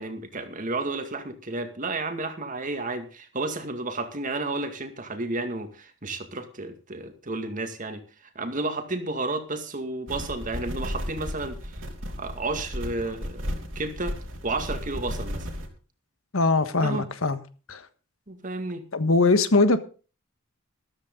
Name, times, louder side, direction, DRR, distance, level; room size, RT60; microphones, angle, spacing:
voice 1, 0.0-8.0 8.4-11.8 12.2-13.5 13.8-14.2 14.4-15.5 16.8-17.1 18.3-18.8, right 2 dB, 40° right, 7 dB, 2.1 m, -32 dB
sound 1, 10.1-15.7, equal, 70° right, 3.4 m, -34 dB
voice 2, 16.3-17.4 17.7-17.8 18.9-19.8, left 3 dB, 90° left, 11 dB, 1.4 m, -21 dB
14.0 x 13.5 x 3.9 m, 0.36 s
head